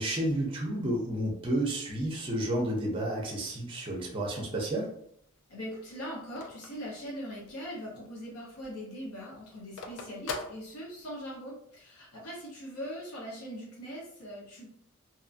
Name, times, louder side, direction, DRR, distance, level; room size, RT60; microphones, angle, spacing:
voice 1, 0.0-4.9, right 1 dB, 25° right, -1 dB, 0.5 m, -31 dB
Telephone, 4.5-7.7 8.1-8.2 8.5-11.4, left 3 dB, 60° left, 0.4 m, -42 dB
voice 2, 5.5-14.7, equal, 85° left, -4 dB, 0.9 m, -41 dB
2.8 x 2.5 x 2.4 m, 0.69 s
head